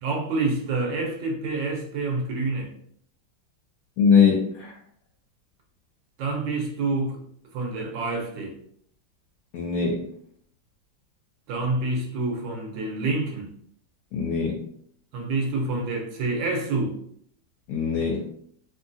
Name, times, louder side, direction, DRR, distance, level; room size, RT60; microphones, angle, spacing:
voice 1, 0.0-2.7 6.2-7.2 7.5-8.6 11.5-13.5 15.1-17.0, right 3 dB, 85° right, 1.4 m, -27 dB
voice 2, 4.0-4.7 9.5-10.1 14.1-14.6 17.7-18.2, left 6 dB, 75° left, 0.8 m, -21 dB
3.5 x 2.6 x 2.3 m
omnidirectional pair, 2.0 m